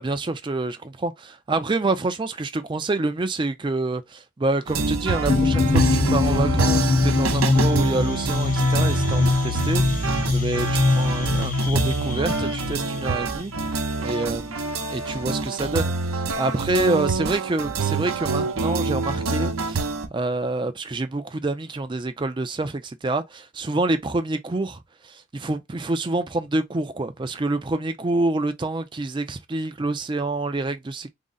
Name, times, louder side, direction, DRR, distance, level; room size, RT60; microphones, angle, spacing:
voice 1, 0.0-9.8 10.2-19.9 20.1-31.1, right 2 dB, 20° right, 0.4 m, -27 dB
sound 1, 4.7-20.1, right 4 dB, 85° right, 0.7 m, -26 dB
sound 2, 5.3-13.9, left 3 dB, 40° left, 0.6 m, -22 dB
3.7 x 2.1 x 3.8 m
head